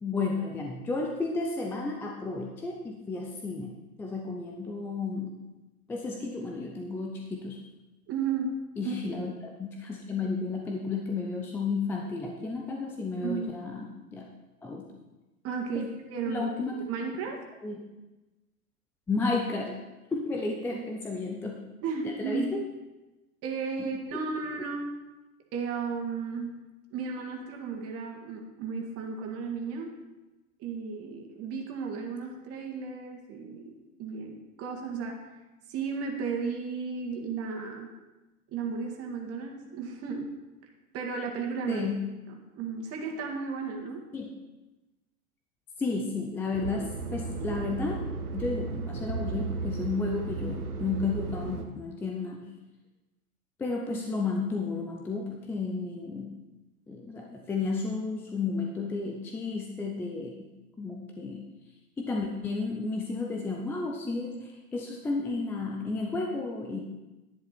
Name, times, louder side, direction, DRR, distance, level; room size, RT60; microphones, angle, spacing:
voice 1, 0.0-5.4 5.9-7.6 8.8-14.3 14.6-14.9 15.7-15.9 16.2-16.9 17.6-17.8 19.1-19.8 20.1-21.6 22.0-22.6 23.8-24.2 41.7-42.1 44.1-44.3 45.8-52.5 53.6-56.4 56.9-60.5 60.8-61.5 62.0-66.8, left 3 dB, 5° left, 1 dB, 0.4 m, -32 dB
voice 2, 8.1-9.2 13.2-13.5 15.4-16.4 16.8-17.4 20.7-20.8 21.8-22.5 23.4-24.9 25.5-26.5 26.9-29.9 30.6-35.3 35.7-37.9 38.5-40.3 40.9-41.9 42.3-44.1, right 5 dB, 30° right, 1 dB, 2.0 m, -34 dB
sound 1, 46.5-51.6, right 4 dB, 75° right, 1.4 m, -34 dB
10.5 x 10.5 x 4.3 m, 1.1 s
hypercardioid pair, 110°, 45 cm